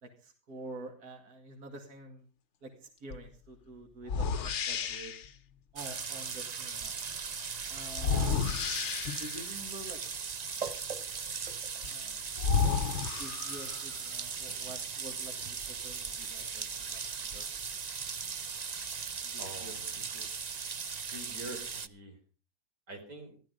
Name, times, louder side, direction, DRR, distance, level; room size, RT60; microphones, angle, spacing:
voice 1, 0.0-2.3 2.6-5.1 5.7-7.0 7.7-8.5 9.1-10.0 11.8-12.3 12.5-17.5 19.2-20.3, right 2 dB, 65° right, 2 dB, 2.7 m, -48 dB
sound 1, 3.1-3.3 4.0-5.3 7.9-9.5 11.8-11.9 12.4-14.0, left 6 dB, 50° left, 1.0 m, -31 dB
sound 2, 5.8-21.9, right 6 dB, 45° right, 0.5 m, -38 dB
voice 2, 19.4-19.9 21.1-22.1 22.9-23.3, right 1 dB, 90° right, 4 dB, 4.4 m, -45 dB
15.0 x 13.0 x 5.2 m, 0.36 s
omnidirectional pair, 1.7 m